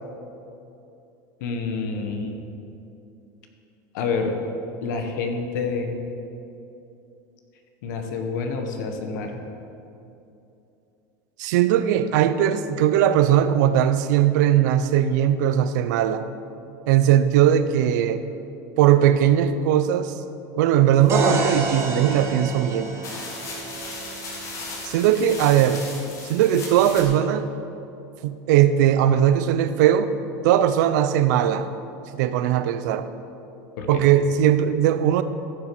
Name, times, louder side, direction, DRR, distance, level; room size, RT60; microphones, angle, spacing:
voice 1, 1.4-2.4 3.9-4.4 4.8-6.0 7.8-9.4 33.8-34.0, left 4 dB, 85° left, 4 dB, 1.5 m, -28 dB
voice 2, 11.4-16.2 16.9-18.2 18.8-20.1 20.6-22.9 24.9-25.8 26.2-27.5 28.2-30.1 30.4-31.7 32.2-33.1 33.9-35.2, right 10 dB, 75° right, 11 dB, 0.7 m, -19 dB
sound 1, 21.0-21.9 22.6-22.7 23.0-27.0, left 3 dB, 35° left, 2.0 m, -37 dB
sound 2, 21.1-24.9, right 2 dB, 30° right, 1.8 m, -28 dB
15.0 x 6.6 x 6.1 m, 2.8 s
supercardioid pair, 160°, 10 cm